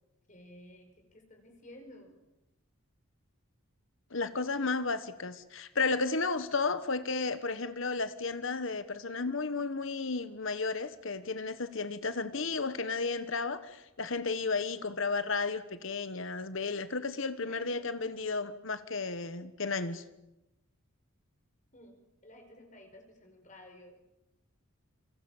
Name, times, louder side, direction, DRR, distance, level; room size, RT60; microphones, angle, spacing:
voice 1, 0.3-2.2 17.5-17.8 21.7-22.0 22.2-24.0, left 1 dB, 35° left, 4 dB, 5.0 m, -53 dB
voice 2, 4.1-20.0, left 4 dB, 60° left, 12 dB, 1.4 m, -33 dB
28.0 x 26.0 x 7.3 m, 0.92 s
head